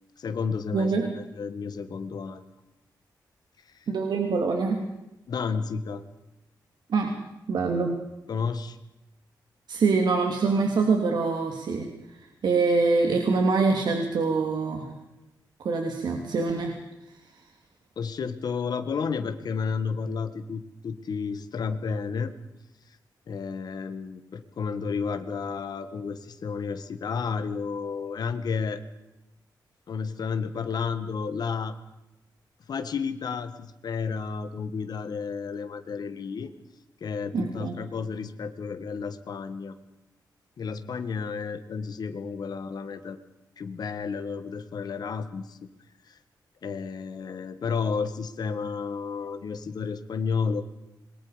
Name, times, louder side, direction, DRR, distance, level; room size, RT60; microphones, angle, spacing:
voice 1, 0.2-2.5 5.3-6.0 8.3-8.8 18.0-22.3 23.3-28.8 29.9-31.8 32.7-36.5 37.0-39.7 40.6-43.2 43.6-45.6 46.1-46.2 46.6-50.6, left 5 dB, 60° left, 9 dB, 1.7 m, -31 dB
voice 2, 0.7-1.1 3.9-4.8 6.9-7.1 7.5-7.9 9.7-14.9 15.6-16.7 37.3-37.8, right 4 dB, 70° right, 2 dB, 3.1 m, -25 dB
27.0 x 21.5 x 5.2 m, 0.95 s
wide cardioid pair, 135°, 8 cm